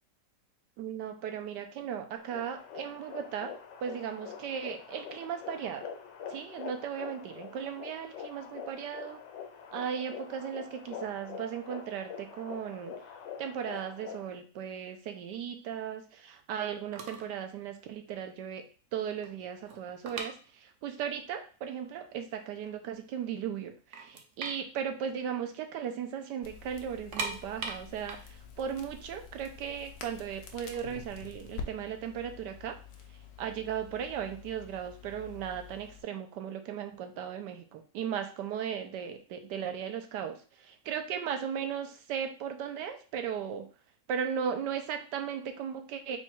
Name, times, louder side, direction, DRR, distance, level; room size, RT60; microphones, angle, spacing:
voice 1, 0.8-3.5 3.8-5.8 6.3-9.2 9.7-12.9 13.4-18.7 18.9-32.8 33.4-43.7 44.1-46.2, right 8 dB, 80° right, 7 dB, 1.2 m, -37 dB
sound 1, 2.2-14.3, left 7 dB, 90° left, 1.4 m, -45 dB
sound 2, 16.9-17.4 17.6-17.9 18.4-18.5 18.8-21.0 21.3-21.4 22.0-22.1 22.5-23.2 23.6-23.7 23.9-25.9 26.2-26.3 26.9-29.8 30.5-32.3, right 4 dB, 60° right, 0.8 m, -41 dB
Crackle, 26.4-36.0, left 5 dB, 70° left, 1.1 m, -48 dB
4.2 x 2.3 x 4.4 m, 0.37 s
omnidirectional pair, 1.8 m